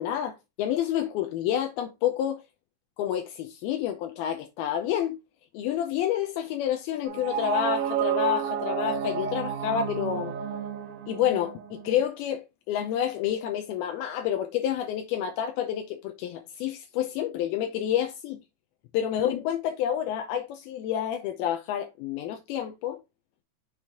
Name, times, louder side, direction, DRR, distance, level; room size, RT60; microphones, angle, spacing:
voice 1, 0.0-2.4 3.0-5.2 5.5-10.3 11.1-18.4 18.9-23.0, left 10 dB, 85° left, 2.2 m, -29 dB
sound 1, 7.0-12.0, right 8 dB, 70° right, 2.3 m, -31 dB
7.2 x 4.6 x 3.5 m
omnidirectional pair, 5.2 m